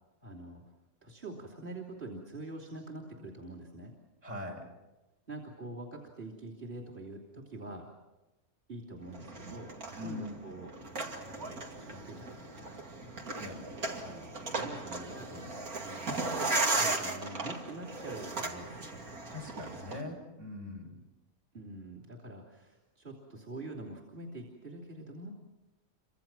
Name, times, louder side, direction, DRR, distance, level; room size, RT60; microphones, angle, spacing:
voice 1, 0.2-0.6 1.0-3.9 5.3-7.9 8.7-10.7 11.2-12.8 14.0-19.0 21.5-25.3, right 2 dB, 35° right, 0 dB, 3.3 m, -45 dB
voice 2, 4.2-4.7 10.0-10.4 13.3-13.6 19.3-21.0, left 2 dB, 55° right, 0 dB, 6.6 m, -42 dB
sound 1, 9.1-20.0, right 2 dB, 80° right, 2.9 m, -36 dB
29.5 x 25.5 x 6.1 m, 1.0 s
omnidirectional pair, 1.5 m